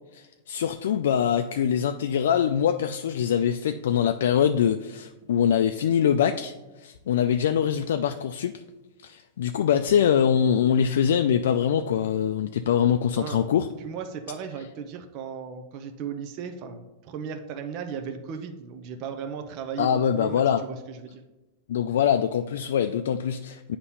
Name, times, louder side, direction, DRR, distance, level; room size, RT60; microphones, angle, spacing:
voice 1, 0.1-8.5 9.0-13.7 19.8-20.6 21.7-23.8, left 8 dB, 75° left, 7 dB, 0.3 m, -23 dB
voice 2, 13.8-21.2, right 6 dB, 40° right, 6 dB, 0.6 m, -36 dB
8.2 x 2.9 x 5.6 m, 1.1 s
hypercardioid pair, 140°, 0 cm